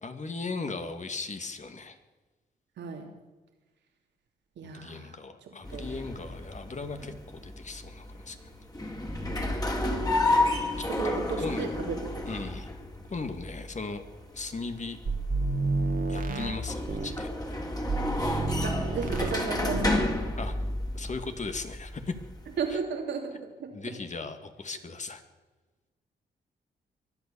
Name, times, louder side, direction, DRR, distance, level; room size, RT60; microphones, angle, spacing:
voice 1, 0.0-2.0 4.7-8.5 10.4-11.8 12.3-12.7 13.1-14.0 14.3-15.0 16.1-17.3 20.4-20.5 20.9-22.1 22.7-22.8 23.7-25.2, left 3 dB, 40° left, 8 dB, 2.2 m, -37 dB
voice 2, 2.8-3.1 4.6-5.1 5.7-5.8 10.9-12.2 18.6-20.0 22.6-23.3 23.6-23.7, right 5 dB, 80° right, 3 dB, 2.9 m, -34 dB
sound 1, 5.6-22.7, left 2 dB, 20° left, 3.3 m, -32 dB
sound 2, 15.1-17.2 17.9-19.4 19.7-20.0, right 3 dB, 50° right, 2.0 m, -30 dB
23.5 x 8.4 x 7.1 m, 1.2 s
supercardioid pair, 55°, 18 cm